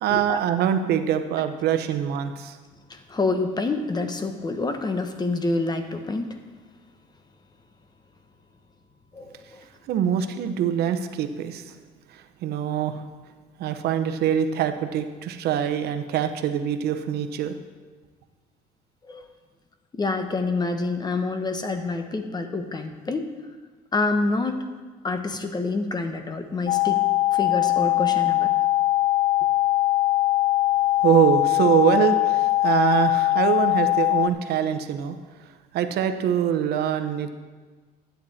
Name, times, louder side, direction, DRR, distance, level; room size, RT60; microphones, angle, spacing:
voice 1, 0.0-2.6 9.9-11.7 12.1-13.0 13.6-17.5 31.0-35.2 35.7-37.3, right 9 dB, 70° right, 8 dB, 0.9 m, -24 dB
voice 2, 2.9-6.4 9.1-9.7 15.5-15.6 19.0-19.3 19.9-23.3 23.9-24.7 25.0-27.0 27.3-28.5, left 3 dB, 25° left, 7 dB, 1.1 m, -27 dB
sound 1, 26.7-34.3, left 16 dB, 75° left, 0.5 m, -21 dB
12.5 x 9.2 x 4.3 m, 1.4 s
cardioid pair, 110°, 17 cm